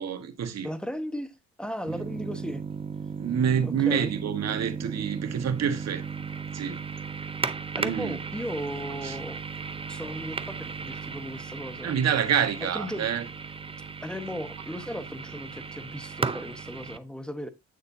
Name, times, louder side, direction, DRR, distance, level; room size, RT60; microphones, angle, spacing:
voice 1, 0.0-0.7 3.2-6.0 6.5-6.8 7.8-8.2 9.0-9.2 11.8-13.2, right 8 dB, 60° right, 1.5 m, -27 dB
voice 2, 0.6-2.6 3.6-4.1 7.7-9.4 9.9-11.9 12.6-13.1 14.0-17.5, equal, 5° left, 1.1 m, -36 dB
sound 1, 1.9-17.0, right 5 dB, 20° right, 0.6 m, -36 dB
8.7 x 6.7 x 2.7 m
cardioid pair, 90°, 30 cm